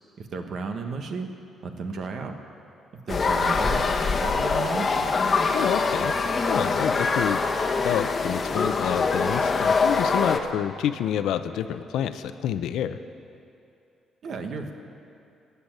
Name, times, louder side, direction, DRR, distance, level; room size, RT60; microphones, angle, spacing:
voice 1, 0.2-1.3 1.6-2.4 2.9-3.9 4.2-5.1 14.2-14.7, right 4 dB, 60° right, 5 dB, 1.2 m, -33 dB
sound 1, 3.1-10.4, left 4 dB, 40° left, 1.0 m, -24 dB
voice 2, 5.5-6.1 6.5-7.4 7.8-13.0, left 10 dB, 85° left, 11 dB, 0.6 m, -28 dB
15.5 x 7.0 x 9.1 m, 2.7 s
cardioid pair, 90°, 0 cm